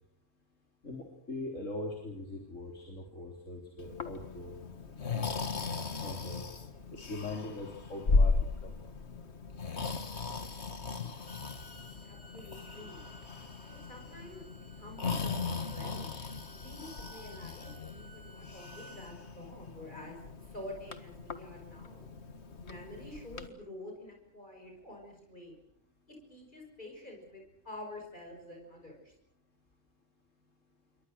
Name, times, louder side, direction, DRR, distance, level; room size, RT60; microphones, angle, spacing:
voice 1, 0.8-4.6 5.0-5.3 6.0-6.4 6.9-8.8, left 2 dB, 75° left, 2 dB, 4.1 m, -41 dB
Breathing, 3.8-23.5, left 4 dB, 60° left, 1.9 m, -36 dB
Bowed string instrument, 11.1-19.2, right 2 dB, 15° right, 4.5 m, -57 dB
voice 2, 12.0-13.0 13.6-16.1 16.5-22.1 22.6-25.5 26.1-29.1, left 1 dB, 40° left, 1 dB, 5.8 m, -48 dB
28.5 x 23.5 x 6.5 m, 0.73 s
omnidirectional pair, 1.3 m